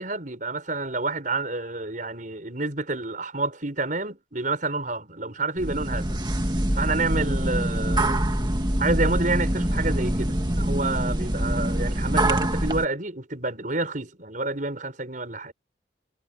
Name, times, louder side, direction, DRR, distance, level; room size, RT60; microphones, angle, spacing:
voice 1, 0.0-6.2 6.8-8.2 8.8-15.5, right 3 dB, 45° right, 5.7 m, -29 dB
sound 1, 5.6-12.9, right 1 dB, 25° right, 2.0 m, -25 dB
head